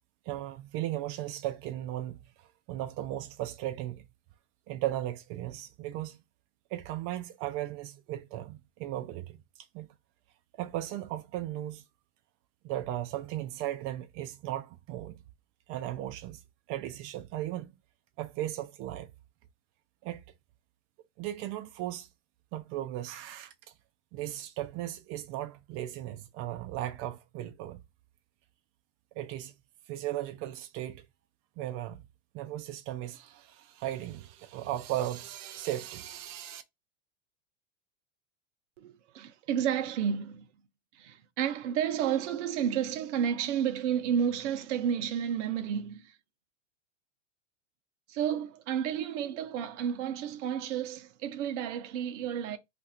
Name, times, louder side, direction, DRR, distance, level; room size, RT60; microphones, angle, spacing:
voice 1, 0.3-2.2 2.7-4.0 4.7-6.2 6.7-9.4 9.7-9.9 10.6-11.8 12.6-15.2 15.7-16.4 16.7-17.7 18.2-19.1 20.0-20.2 21.2-22.1 22.5-23.5 24.1-27.8 29.2-29.5 29.9-31.0 31.6-32.0 32.3-36.6, right 13 dB, 40° right, 0.4 m, -36 dB
voice 2, 38.8-40.5 40.9-46.2 48.1-52.6, right 8 dB, 70° right, 0.8 m, -31 dB
2.5 x 2.4 x 4.2 m
hypercardioid pair, 110°, 37 cm